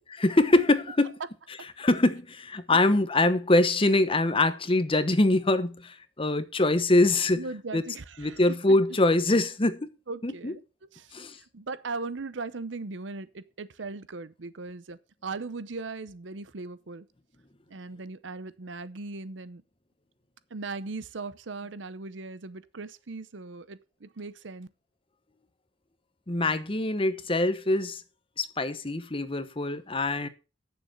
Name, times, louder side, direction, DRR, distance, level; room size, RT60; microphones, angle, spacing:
voice 1, 0.2-1.1 1.8-7.4 7.7-7.8 8.2-9.9 10.2-10.5 11.1-11.4 26.3-28.0 28.4-30.3, left 2 dB, 30° left, 1.0 m, -24 dB
voice 2, 7.3-8.4 10.1-10.6 10.9-11.2 11.5-17.0 17.7-19.6 20.5-24.7, right 3 dB, 85° right, 0.7 m, -38 dB
8.8 x 7.0 x 6.4 m
head